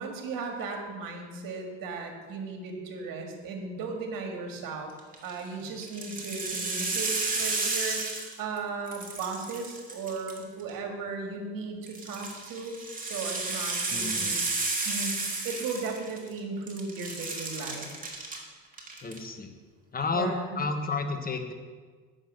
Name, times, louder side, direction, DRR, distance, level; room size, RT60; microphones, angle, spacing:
voice 1, 0.0-4.9 5.2-14.4 14.9-17.9 20.1-20.6, right 4 dB, 65° right, 3 dB, 1.9 m, -36 dB
sound 1, 5.0-5.3 5.8-8.6 8.9-10.7 11.9-16.4 16.7-18.4 18.7-19.2, right 3 dB, 20° right, 2.1 m, -32 dB
voice 2, 13.9-14.4 19.0-19.5 19.9-21.5, left 3 dB, 25° left, 6 dB, 1.2 m, -31 dB
8.1 x 6.4 x 6.5 m, 1.5 s
supercardioid pair, 85°, 36 cm